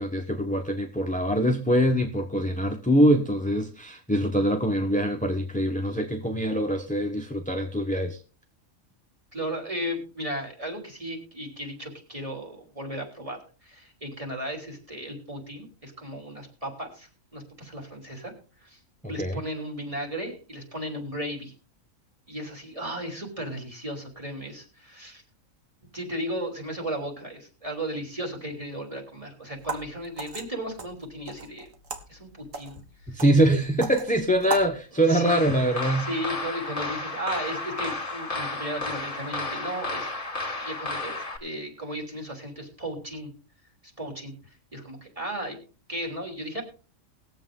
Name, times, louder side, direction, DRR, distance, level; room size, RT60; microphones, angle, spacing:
voice 1, 0.0-8.2 19.0-19.4 33.1-36.1, right 1 dB, 5° left, 2 dB, 0.9 m, -24 dB
voice 2, 9.3-18.3 18.6-18.8 19.1-21.5 22.3-25.2 25.9-31.7 32.1-32.7 35.1-35.5 36.1-40.1 40.6-41.2 41.4-43.3 44.0-44.3 44.7-45.6 45.9-46.6, equal, 25° right, 1 dB, 3.4 m, -35 dB
sound 1, 29.5-34.8, right 4 dB, 75° right, 2.0 m, -38 dB
sound 2, 35.3-41.4, left 3 dB, 40° left, 2.2 m, -32 dB
20.5 x 7.7 x 3.7 m, 0.36 s
omnidirectional pair, 1.4 m